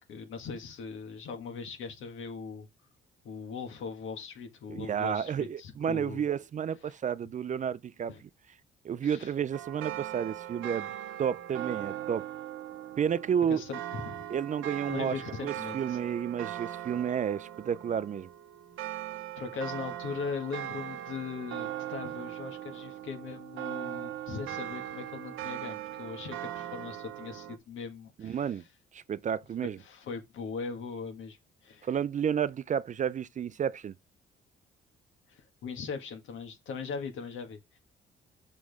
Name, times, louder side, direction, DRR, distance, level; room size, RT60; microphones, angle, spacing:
voice 1, 0.0-2.7 3.2-6.2 6.9-7.0 8.1-8.2 9.0-9.3 13.5-14.3 14.9-16.0 16.6-16.7 19.4-28.6 29.6-31.9 35.3-37.8, left 5 dB, 80° left, 1.8 m, -40 dB
voice 2, 4.7-8.1 8.8-10.9 11.2-12.3 13.0-13.6 14.3-15.1 15.4-18.3 28.2-28.6 28.9-29.8 31.8-34.0, right 8 dB, 40° right, 0.4 m, -31 dB
sound 1, 9.5-27.6, right 12 dB, 80° right, 0.7 m, -40 dB
6.3 x 6.3 x 3.5 m
cardioid pair, 90°, 20 cm